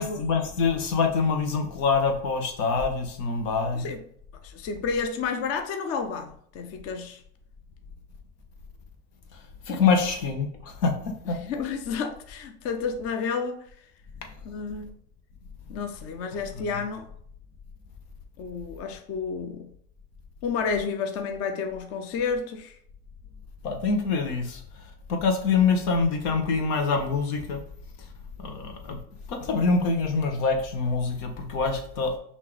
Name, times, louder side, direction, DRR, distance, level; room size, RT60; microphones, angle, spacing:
voice 1, 0.0-3.9 9.7-11.4 16.6-16.7 23.6-24.6 25.1-27.6 28.4-29.0 29.3-32.2, left 4 dB, 70° left, 1.3 m, -25 dB
voice 2, 3.7-4.0 4.4-7.2 11.3-13.7 14.4-14.9 15.7-17.1 18.4-19.7 20.4-22.7, left 5 dB, 30° left, 0.5 m, -31 dB
5.6 x 2.9 x 3.2 m
hypercardioid pair, 105°, 50 cm